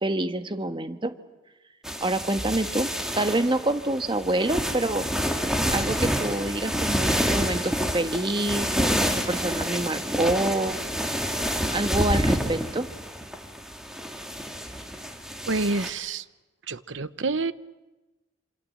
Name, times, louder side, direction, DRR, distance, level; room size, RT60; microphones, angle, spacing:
voice 1, 0.0-1.1 2.0-5.1 5.7-10.8 11.7-12.9, right 1 dB, 25° right, 9 dB, 1.3 m, -27 dB
sound 1, 1.8-15.9, equal, 5° right, 2.6 m, -28 dB
voice 2, 15.4-16.3 16.7-17.5, right 3 dB, 65° right, 15 dB, 0.9 m, -27 dB
27.0 x 27.0 x 7.7 m, 1.1 s
head